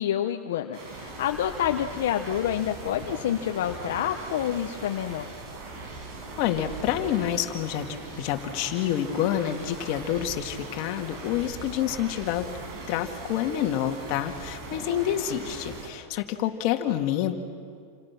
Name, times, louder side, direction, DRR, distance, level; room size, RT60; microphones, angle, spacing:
voice 1, 0.0-5.3, left 10 dB, 75° left, 5 dB, 1.1 m, -28 dB
sound 1, 0.7-15.9, right 2 dB, 50° right, 6.0 m, -40 dB
voice 2, 6.4-7.9 8.2-12.5 12.9-17.4, left 11 dB, 50° left, 4 dB, 2.3 m, -28 dB
29.0 x 26.5 x 6.1 m, 2.2 s
supercardioid pair, 140°, 0 cm